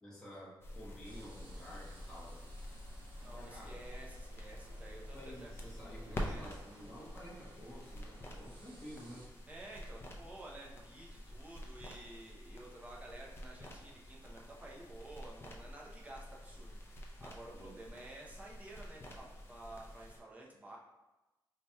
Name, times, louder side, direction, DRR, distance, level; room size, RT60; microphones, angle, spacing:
voice 1, 0.0-2.4 3.2-3.8 5.1-9.3 17.5-17.8, equal, 10° left, -8 dB, 1.2 m, -51 dB
sound 1, 0.6-20.2, left 1 dB, 30° left, 0.5 m, -48 dB
sound 2, 1.0-9.3, right 2 dB, 85° right, 0.6 m, -60 dB
voice 2, 3.2-5.5 6.1-6.5 9.5-20.8, right 1 dB, 20° right, -3 dB, 0.6 m, -52 dB
4.4 x 2.8 x 2.2 m, 1.1 s
wide cardioid pair, 135°, 8 cm